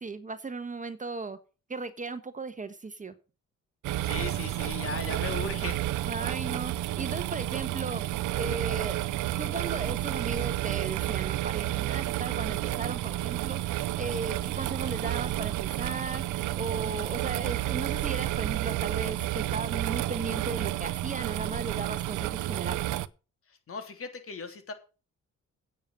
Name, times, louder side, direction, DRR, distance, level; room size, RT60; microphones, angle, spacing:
voice 1, 0.0-1.4 1.7-3.1 6.1-8.0 8.3-9.0 9.4-13.7 14.0-16.2 16.5-22.9, right 3 dB, 25° right, 11 dB, 1.2 m, -36 dB
sound 1, 3.8-23.1, right 15 dB, 80° right, 0.7 m, -31 dB
voice 2, 4.0-5.8 23.7-24.7, left 5 dB, 45° left, 6 dB, 3.2 m, -37 dB
9.4 x 7.0 x 7.3 m, 0.34 s
cardioid pair, 90°, 30 cm